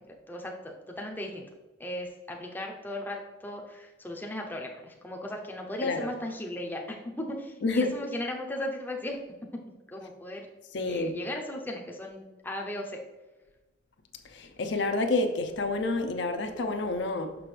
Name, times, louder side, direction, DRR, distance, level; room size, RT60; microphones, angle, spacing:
voice 1, 0.3-1.4 1.8-7.0 7.3-9.2 9.9-10.5 10.9-13.0, left 1 dB, 10° left, 0.6 m, -36 dB
voice 2, 5.8-6.1 7.6-8.0 10.7-11.2 14.2-17.4, left 2 dB, 65° left, 0.6 m, -29 dB
6.1 x 5.9 x 3.2 m
head